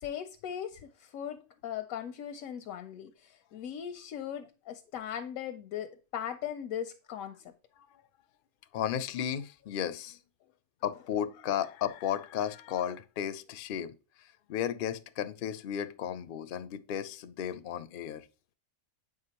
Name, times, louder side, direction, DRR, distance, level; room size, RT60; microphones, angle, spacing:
voice 1, 0.0-7.4, left 9 dB, 90° left, 1.0 m, -39 dB
voice 2, 8.7-10.2 10.8-14.0 14.5-18.2, left 9 dB, 60° left, 0.5 m, -34 dB
7.7 x 4.9 x 2.9 m
omnidirectional pair, 1.4 m